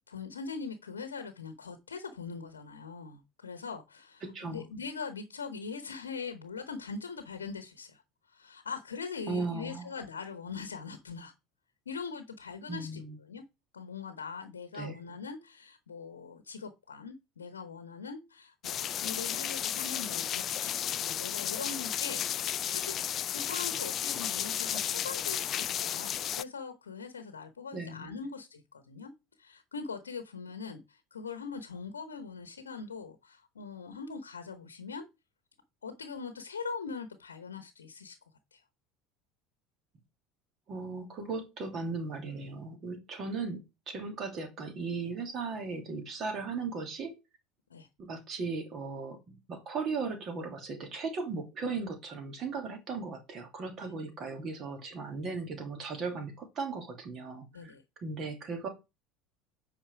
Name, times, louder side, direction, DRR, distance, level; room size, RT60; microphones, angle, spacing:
voice 1, 0.1-8.0 8.3-11.3 11.9-13.4 13.7-23.0 23.3-29.1 29.4-35.1 35.8-38.2 38.5-38.6 47.7-47.9 53.8-53.9 57.5-57.8, left 5 dB, 80° left, 9 dB, 0.9 m, -42 dB
voice 2, 4.2-4.6 9.3-9.9 12.7-13.2 14.7-15.0 27.7-28.1 40.7-43.6 43.9-47.1 48.0-57.7 58.0-58.7, right 4 dB, 40° right, 5 dB, 2.7 m, -37 dB
sound 1, 18.6-26.4, left 10 dB, 40° left, 0.4 m, -33 dB
8.7 x 5.2 x 4.8 m, 0.25 s
figure-of-eight pair, 70°, 0 cm